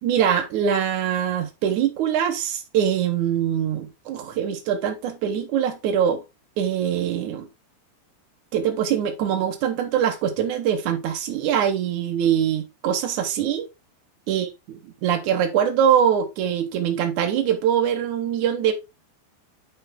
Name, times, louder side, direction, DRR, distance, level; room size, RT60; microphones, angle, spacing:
voice 1, 0.0-6.2 6.6-7.5 8.5-13.7 14.3-14.5 15.0-18.7, right 9 dB, 90° right, 1.7 m, -23 dB
9.6 x 5.6 x 3.6 m
omnidirectional pair, 5.1 m